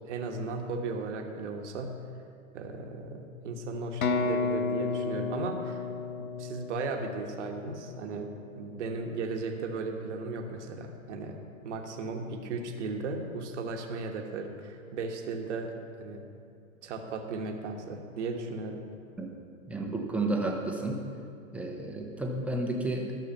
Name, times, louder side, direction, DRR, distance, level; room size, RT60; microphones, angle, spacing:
voice 1, 0.0-1.9 2.5-5.9 6.2-8.3 8.6-16.2 16.8-18.8, right 3 dB, 55° right, 3 dB, 1.3 m, -36 dB
sound 1, 4.0-7.8, left 4 dB, 90° left, 0.7 m, -32 dB
voice 2, 19.7-21.0 21.5-23.1, right 2 dB, 5° right, 1 dB, 0.8 m, -31 dB
12.0 x 6.5 x 5.5 m, 2.4 s
hypercardioid pair, 120°, 41 cm